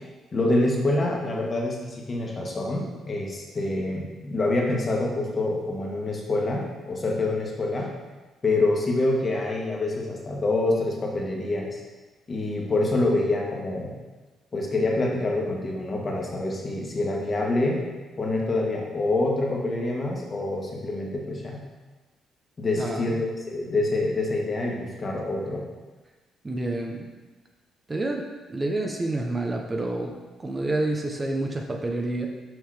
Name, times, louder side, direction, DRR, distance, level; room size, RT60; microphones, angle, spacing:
voice 1, 0.3-7.9 8.4-11.8 12.3-14.0 14.5-17.8 18.2-21.6 22.6-25.7, left 2 dB, 35° left, -1 dB, 1.7 m, -26 dB
voice 2, 22.7-23.1 26.4-27.1 27.9-30.1 30.4-32.3, right 2 dB, 25° right, 1 dB, 0.8 m, -28 dB
6.5 x 5.4 x 4.9 m, 1.3 s
cardioid pair, 90°, 0 cm